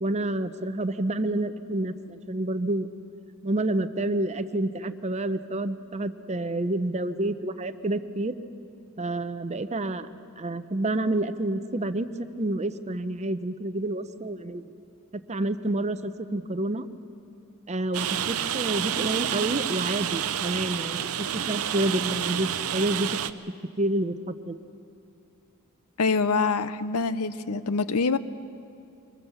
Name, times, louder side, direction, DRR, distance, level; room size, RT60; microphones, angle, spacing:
voice 1, 0.0-2.9 3.4-8.3 9.0-10.1 10.4-12.1 12.4-14.6 15.3-16.9 17.7-21.1 21.3-23.1 23.8-24.6, right 1 dB, 30° right, 11 dB, 0.7 m, -28 dB
Rain, 17.9-23.3, right 9 dB, 75° right, 0.6 m, -29 dB
voice 2, 26.0-28.2, left 4 dB, 80° left, 14 dB, 0.7 m, -25 dB
24.5 x 20.0 x 7.1 m, 2.6 s
head